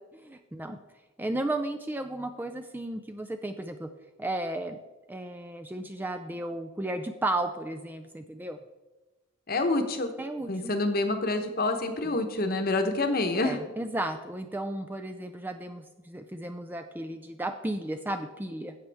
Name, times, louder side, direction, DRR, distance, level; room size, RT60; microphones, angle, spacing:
voice 1, 0.1-0.8 1.2-3.9 4.2-4.8 5.1-8.6 10.2-10.7 12.0-12.2 13.3-18.7, right 1 dB, 10° right, 7 dB, 0.3 m, -34 dB
voice 2, 9.5-10.1 10.5-13.6, left 2 dB, 45° left, 6 dB, 1.0 m, -27 dB
11.5 x 8.1 x 3.5 m, 1.2 s
head